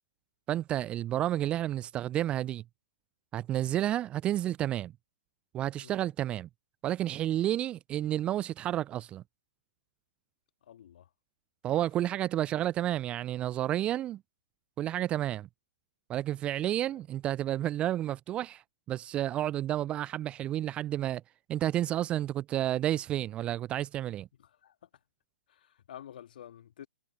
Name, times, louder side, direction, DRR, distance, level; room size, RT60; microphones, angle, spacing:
voice 1, 0.5-2.6 3.3-4.9 5.5-6.5 6.8-9.2 11.6-14.2 14.8-15.5 16.1-21.2 21.5-24.3, right 12 dB, 20° right, 0.3 m, -31 dB
voice 2, 10.6-11.1 16.8-17.0 24.4-24.8 25.5-26.9, left 10 dB, 55° left, 1.9 m, -50 dB
figure-of-eight pair, 115°, 6 cm